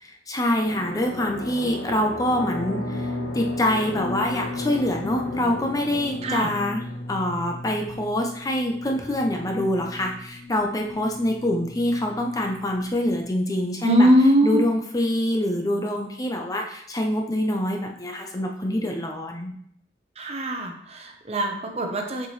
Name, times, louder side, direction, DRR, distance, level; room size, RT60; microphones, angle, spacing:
voice 1, 0.0-6.8 7.1-14.1 14.4-19.6, left 1 dB, 20° left, 2 dB, 0.6 m, -25 dB
sound 1, 0.5-8.2, equal, 85° left, 1.3 m, -37 dB
sound 2, 2.3-13.3, left 2 dB, 35° left, 2.2 m, -36 dB
voice 2, 6.2-6.5 13.8-14.6 20.2-22.3, equal, 35° right, 3 dB, 0.8 m, -21 dB
6.5 x 4.8 x 3.1 m, 0.68 s
head